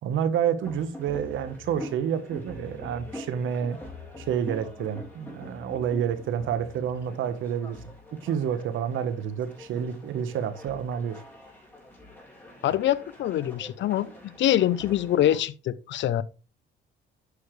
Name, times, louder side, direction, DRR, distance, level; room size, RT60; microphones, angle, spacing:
voice 1, 0.0-3.8 4.2-7.8 8.2-11.2, right 8 dB, 80° right, 1.1 m, -29 dB
sound 1, 0.6-15.4, left 1 dB, 10° left, 5.0 m, -45 dB
voice 2, 12.6-14.1 14.4-16.2, left 12 dB, 70° left, 0.6 m, -24 dB
9.6 x 6.6 x 3.2 m
cardioid pair, 90°, 20 cm